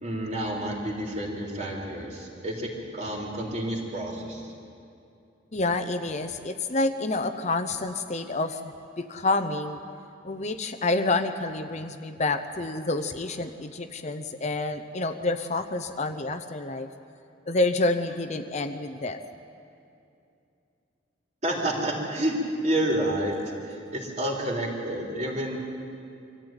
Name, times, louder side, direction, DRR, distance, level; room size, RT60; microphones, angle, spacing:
voice 1, 0.0-4.5 21.4-22.4 22.6-23.4 23.6-25.6, right 1 dB, 40° right, -2 dB, 3.6 m, -29 dB
voice 2, 5.5-8.6 9.0-9.8 10.2-16.9 17.5-19.2, left 2 dB, 40° left, 8 dB, 0.8 m, -28 dB
24.0 x 14.0 x 9.0 m, 2.6 s
head